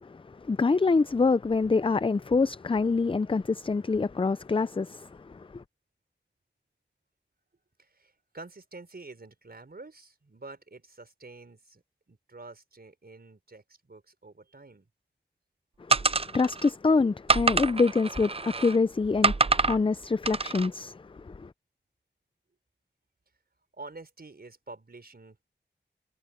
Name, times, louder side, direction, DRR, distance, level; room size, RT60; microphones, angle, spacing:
voice 1, 0.0-5.6 15.9-21.5, left 4 dB, 30° left, 0.5 m, -26 dB
voice 2, 7.8-11.8 12.1-14.9 23.7-25.4, right 3 dB, 55° right, 4.7 m, -48 dB
sound 1, 15.9-16.7 17.3-18.8 19.2-19.8 20.3-20.7, right 4 dB, 30° right, 0.5 m, -26 dB
wide cardioid pair, 50°, 19 cm